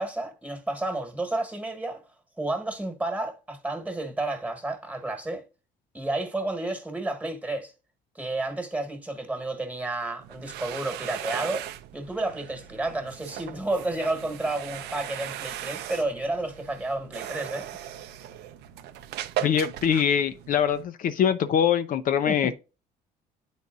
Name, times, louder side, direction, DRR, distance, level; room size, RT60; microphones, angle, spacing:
voice 1, 0.0-2.0 2.4-5.4 5.9-7.7 8.1-11.7 11.9-17.7 22.3-22.5, right 2 dB, 10° right, 1.4 m, -31 dB
sound 1, 10.2-20.8, right 11 dB, 80° right, 0.6 m, -38 dB
voice 2, 19.4-22.5, left 8 dB, 55° left, 0.5 m, -23 dB
10.5 x 4.0 x 2.4 m
cardioid pair, 110°, 17 cm